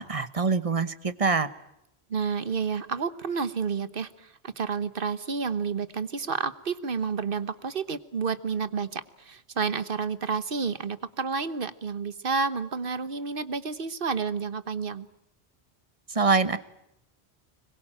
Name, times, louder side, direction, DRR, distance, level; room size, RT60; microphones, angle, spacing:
voice 1, 0.0-1.5 16.1-16.6, right 4 dB, 35° right, 13 dB, 1.1 m, -24 dB
voice 2, 2.1-15.1, right 5 dB, 55° right, 14 dB, 1.3 m, -30 dB
25.0 x 22.0 x 8.9 m, 0.82 s
omnidirectional pair, 1.1 m